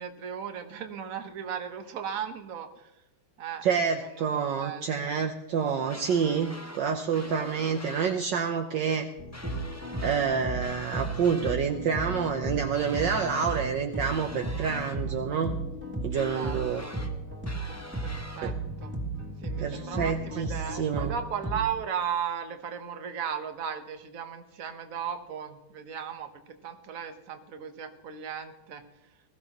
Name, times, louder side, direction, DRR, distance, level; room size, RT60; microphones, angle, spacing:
voice 1, 0.0-2.9 3.4-3.6 4.0-5.1 16.1-16.9 18.0-18.9 19.4-28.8, right 8 dB, 45° right, 6 dB, 1.4 m, -36 dB
voice 2, 3.6-9.1 10.0-15.6 16.0-16.8 18.4-18.5 19.6-21.1, right 6 dB, 65° right, 5 dB, 1.4 m, -28 dB
sound 1, 5.9-6.8 7.1-8.2 9.3-10.3 10.6-11.6 12.7-13.7 14.0-15.0 16.2-17.1 17.5-18.4, left 1 dB, 15° left, 0.6 m, -45 dB
sound 2, 9.2-21.8, right 2 dB, 5° right, 2.6 m, -35 dB
21.0 x 14.5 x 3.0 m, 0.89 s
omnidirectional pair, 2.3 m